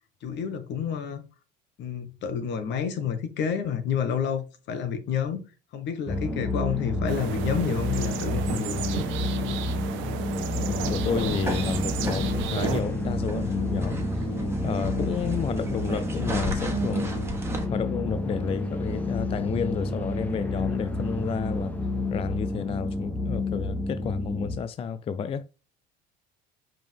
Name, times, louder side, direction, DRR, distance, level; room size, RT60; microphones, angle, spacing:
voice 1, 0.2-1.2 1.8-5.4 5.7-9.1, left 7 dB, 60° left, 1.4 m, -29 dB
sound 1, 6.1-24.6, left 2 dB, 5° left, 1.0 m, -30 dB
sound 2, 7.1-12.8, right 11 dB, 70° right, 0.9 m, -34 dB
voice 2, 10.5-14.3 14.6-17.2 17.7-21.7 22.1-25.4, left 7 dB, 25° left, 0.4 m, -31 dB
sound 3, 10.8-17.7, right 1 dB, 10° right, 1.6 m, -33 dB
5.4 x 5.2 x 3.5 m
cardioid pair, 115°, 21 cm